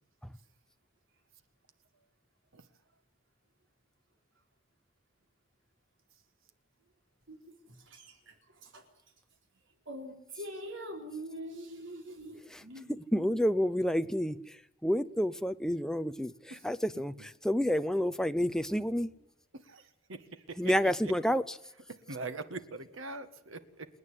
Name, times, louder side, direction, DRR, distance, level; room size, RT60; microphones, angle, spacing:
voice 1, 9.9-13.4, equal, 70° right, 4.2 m, -43 dB
voice 2, 13.1-14.4 14.8-19.1 20.6-21.6, equal, 5° left, 0.8 m, -29 dB
voice 3, 22.1-23.9, right 3 dB, 85° right, 1.9 m, -41 dB
28.0 x 9.7 x 9.9 m
head